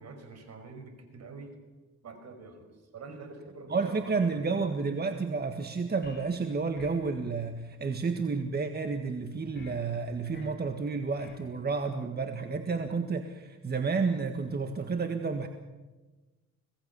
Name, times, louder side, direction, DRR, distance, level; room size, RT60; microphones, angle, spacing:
voice 1, 0.0-1.6 2.0-4.8, right 3 dB, 60° right, 7 dB, 5.3 m, -46 dB
voice 2, 3.7-15.5, right 4 dB, 35° right, 7 dB, 1.7 m, -31 dB
sound 1, 6.0-6.4 6.8-7.1 9.6-9.8 10.3-10.6 11.2-11.5, left 2 dB, 35° left, 5.3 m, -49 dB
26.0 x 18.5 x 7.1 m, 1.2 s
cardioid pair, 90°, 30 cm